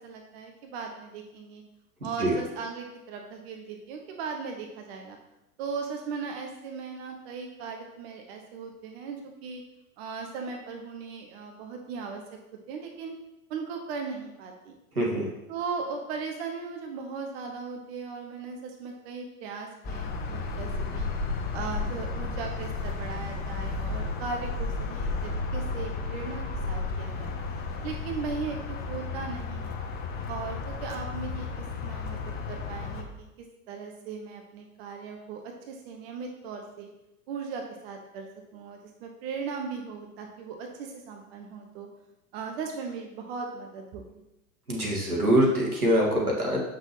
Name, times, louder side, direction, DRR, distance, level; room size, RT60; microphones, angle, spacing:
voice 1, 0.0-1.6 2.0-5.2 5.6-9.6 10.0-12.2 12.7-13.1 13.5-14.7 15.5-21.1 21.5-27.3 27.8-29.8 30.3-32.2 32.5-33.1 33.7-36.9 37.3-41.9 42.3-44.2, right 5 dB, 45° right, 3 dB, 1.0 m, -38 dB
voice 2, 2.0-2.4 14.9-15.3 44.7-46.6, right 1 dB, 85° right, -2 dB, 1.9 m, -24 dB
sound 1, 19.8-33.0, left 3 dB, 20° left, 0.7 m, -33 dB
7.7 x 6.1 x 3.0 m, 0.91 s
figure-of-eight pair, 95°, 43 cm